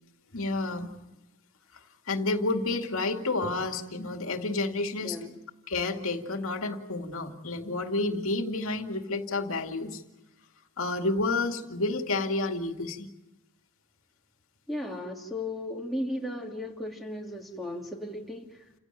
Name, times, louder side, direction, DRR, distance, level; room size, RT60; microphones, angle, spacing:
voice 1, 0.3-0.9 2.1-5.2 5.7-10.0 10.8-13.1, left 2 dB, 75° left, 5 dB, 2.4 m, -30 dB
voice 2, 5.0-5.4 14.7-18.6, left 1 dB, ahead, 1 dB, 2.8 m, -35 dB
29.0 x 17.0 x 9.1 m, 1.0 s
head